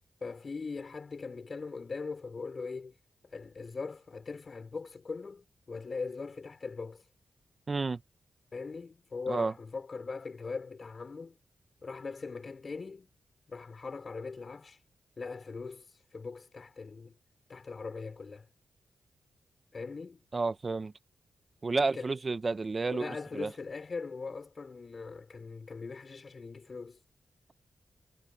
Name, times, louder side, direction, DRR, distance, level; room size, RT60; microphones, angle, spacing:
voice 1, 0.2-2.9 3.2-7.0 8.5-11.4 11.8-13.1 13.5-14.8 15.2-15.8 16.1-17.1 17.5-18.5 19.7-20.2 21.7-22.1 22.9-27.0, left 4 dB, 50° left, 4.8 m, -40 dB
voice 2, 7.7-8.0 9.3-9.5 20.3-20.9 21.6-23.5, right 3 dB, 45° right, 1.2 m, -31 dB
cardioid pair, 50°, 0 cm